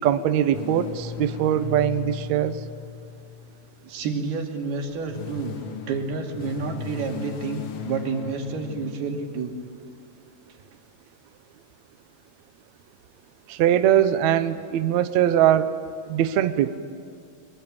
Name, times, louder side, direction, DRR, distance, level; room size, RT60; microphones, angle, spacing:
voice 1, 0.0-2.6 13.5-15.7 16.1-16.8, right 11 dB, 90° right, 10 dB, 1.6 m, -21 dB
sound 1, 0.5-3.9 4.8-9.6, left 6 dB, 75° left, 1.3 m, -37 dB
voice 2, 3.8-5.5 5.9-9.5, right 4 dB, 70° right, 2 dB, 4.4 m, -29 dB
24.0 x 23.5 x 8.8 m, 2.4 s
omnidirectional pair, 4.7 m